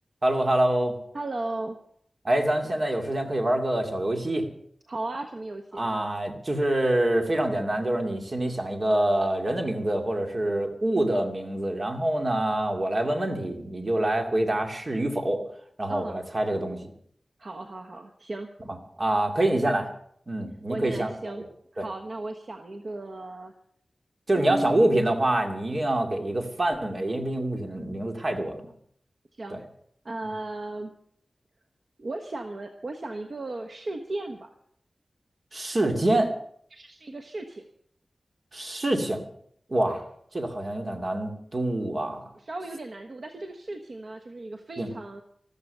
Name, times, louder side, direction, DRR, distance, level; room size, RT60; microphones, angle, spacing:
voice 1, 0.2-0.9 2.2-4.5 5.7-15.4 15.8-16.9 18.7-19.9 20.3-21.4 21.8-21.9 24.3-28.7 29.5-29.6 30.2-30.3 35.5-36.3 38.5-39.2 39.7-40.0 40.3-42.2 44.8-44.9, right 1 dB, 40° right, 4 dB, 2.4 m, -26 dB
voice 2, 1.1-1.8 4.9-5.9 15.9-16.2 17.4-18.5 20.7-21.4 21.7-23.5 24.3-24.8 29.4-29.6 30.0-30.9 32.0-34.5 36.7-37.7 39.9-40.0 42.3-45.2, right 2 dB, 55° right, 5 dB, 1.2 m, -35 dB
13.5 x 13.5 x 6.7 m, 0.64 s
wide cardioid pair, 105°, 0 cm